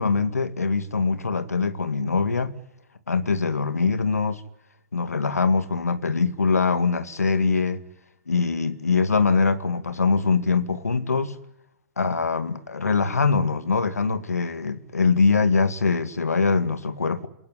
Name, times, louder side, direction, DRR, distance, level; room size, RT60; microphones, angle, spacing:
voice 1, 0.0-2.6 3.1-4.4 4.9-7.8 8.3-11.4 12.0-17.3, left 4 dB, 85° left, 2.1 m, -23 dB
28.5 x 17.5 x 10.0 m
figure-of-eight pair, 120°, 8 cm